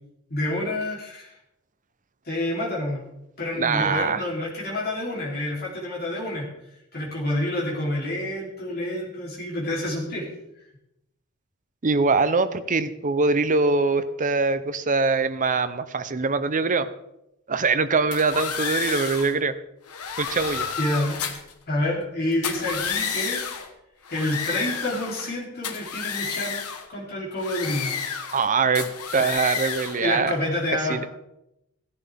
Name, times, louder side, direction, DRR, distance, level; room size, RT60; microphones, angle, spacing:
voice 1, 0.3-1.4 2.2-3.0 3.4-6.5 6.9-10.3 20.8-21.2 21.7-23.4 24.1-26.6 26.9-27.9 30.0-31.1, left 1 dB, 45° left, -4 dB, 3.3 m, -28 dB
voice 2, 3.5-4.2 11.8-16.9 17.5-19.5 20.2-20.7 28.3-30.4 30.9-31.1, right 4 dB, 35° right, 11 dB, 0.7 m, -23 dB
sound 1, 18.1-19.3 19.9-21.5 22.3-23.7 24.0-25.3 25.6-26.9 27.4-28.5 28.7-30.0, left 7 dB, 90° left, 1.2 m, -31 dB
16.5 x 11.0 x 3.5 m, 0.86 s
head